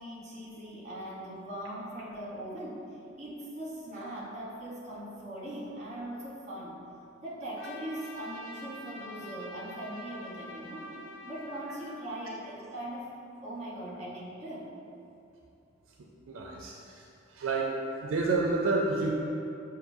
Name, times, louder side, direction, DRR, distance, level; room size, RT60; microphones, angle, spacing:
voice 1, 0.0-6.8 7.2-10.9 11.2-13.1 13.4-14.7, right 1 dB, 35° right, -6 dB, 1.0 m, -40 dB
Trumpet, 7.6-12.2, left 1 dB, 80° left, 0.4 m, -46 dB
voice 2, 16.3-17.7 18.0-19.1, right 3 dB, 80° right, -1 dB, 0.4 m, -29 dB
6.5 x 2.5 x 2.6 m, 2.7 s
head